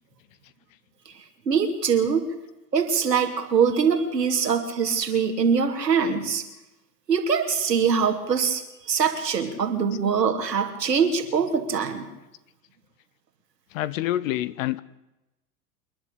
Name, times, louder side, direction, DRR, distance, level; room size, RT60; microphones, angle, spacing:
voice 1, 1.5-2.3 2.7-6.4 7.1-12.1, right 6 dB, 80° right, 5 dB, 3.3 m, -23 dB
voice 2, 13.7-14.8, left 14 dB, 55° left, 18 dB, 1.1 m, -27 dB
28.0 x 11.5 x 8.3 m, 0.96 s
figure-of-eight pair, 90°, 48 cm